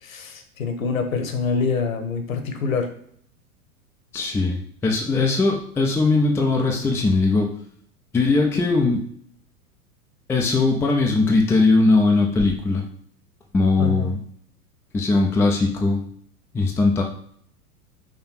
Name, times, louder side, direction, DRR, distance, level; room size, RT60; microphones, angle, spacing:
voice 1, 0.0-2.9 13.8-14.1, left 5 dB, 60° left, 6 dB, 1.6 m, -25 dB
voice 2, 4.1-7.5 8.1-9.0 10.3-12.8 13.5-14.2 14.9-16.0 16.5-17.0, left 3 dB, 5° left, 1 dB, 0.5 m, -20 dB
5.9 x 3.4 x 5.7 m, 0.62 s
figure-of-eight pair, 95°, 45 cm